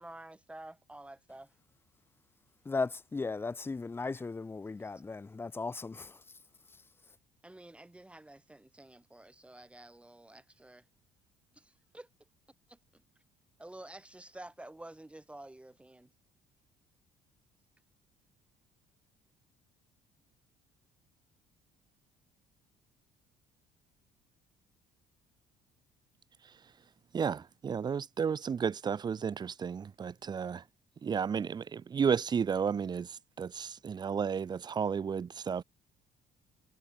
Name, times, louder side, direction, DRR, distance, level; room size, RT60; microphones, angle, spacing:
voice 1, 0.0-1.5 4.8-5.0 7.4-10.8 11.5-12.1 12.7-13.0 13.6-16.1, right 1 dB, 10° right, 3.3 m, -50 dB
voice 2, 2.6-6.2, left 3 dB, 15° left, 0.9 m, -36 dB
voice 3, 27.1-30.6 31.0-35.6, right 6 dB, 30° right, 1.0 m, -32 dB
cardioid pair, 125°, 14 cm